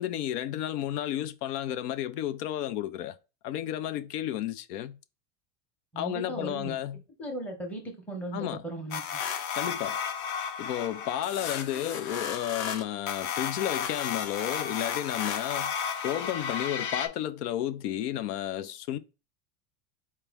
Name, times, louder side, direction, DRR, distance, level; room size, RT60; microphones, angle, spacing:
voice 1, 0.0-3.2 3.4-5.0 6.0-7.0 8.3-8.6 9.5-10.0 10.6-15.7 16.0-19.0, left 12 dB, 90° left, 0.7 m, -32 dB
voice 2, 5.9-6.8 7.2-9.0, right 2 dB, 5° left, 0.7 m, -37 dB
sound 1, 8.9-17.1, left 7 dB, 40° left, 0.6 m, -33 dB
4.5 x 3.0 x 3.4 m
supercardioid pair, 160°, 46 cm